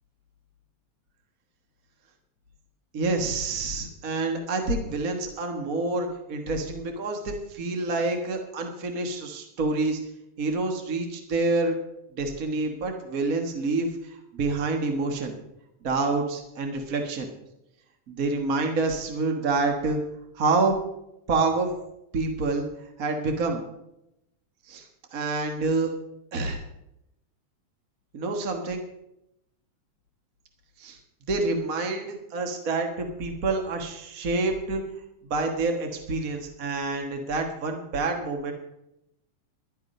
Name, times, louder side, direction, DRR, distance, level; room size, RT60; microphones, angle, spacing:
voice 1, 2.9-10.0 10.4-11.8 12.2-15.4 15.8-17.3 18.1-20.0 20.3-20.7 21.3-21.7 22.1-22.7 23.0-23.6 24.7-24.8 25.1-25.9 26.3-26.6 28.1-28.8 30.8-31.0 31.3-34.8 35.3-38.5, right 3 dB, 45° right, 3 dB, 1.1 m, -27 dB
12.5 x 10.5 x 5.4 m, 0.83 s
omnidirectional pair, 3.5 m